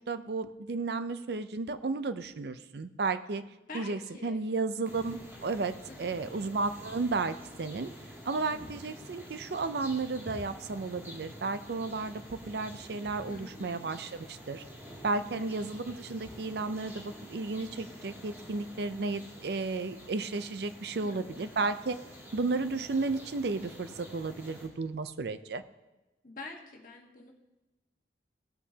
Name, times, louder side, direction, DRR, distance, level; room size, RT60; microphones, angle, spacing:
voice 1, 0.1-3.4 3.7-7.9 8.3-14.6 15.0-22.0 22.3-25.6, right 3 dB, 60° right, 11 dB, 0.5 m, -33 dB
voice 2, 3.7-4.5 5.9-6.3 8.5-8.9 13.3-13.8 15.3-15.6 21.0-21.6 26.2-27.3, left 3 dB, 50° left, 1 dB, 1.4 m, -47 dB
sound 1, 4.8-24.7, equal, 10° right, 2.5 m, -48 dB
17.5 x 8.3 x 2.8 m, 1.0 s
head